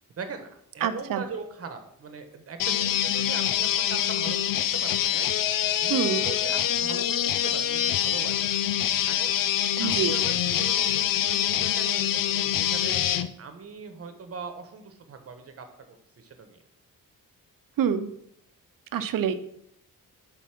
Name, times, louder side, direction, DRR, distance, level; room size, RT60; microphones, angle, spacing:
voice 1, 0.2-0.5 0.7-5.3 5.7-8.6 8.9-16.6, right 5 dB, 45° right, 7 dB, 1.2 m, -40 dB
voice 2, 0.8-1.2 5.9-6.2 9.8-10.1 17.8-18.1 18.9-19.3, right 8 dB, 75° right, 11 dB, 0.8 m, -26 dB
sound 1, 2.6-13.3, left 11 dB, 75° left, 0.6 m, -25 dB
8.2 x 5.5 x 5.9 m, 0.72 s
wide cardioid pair, 150°, 33 cm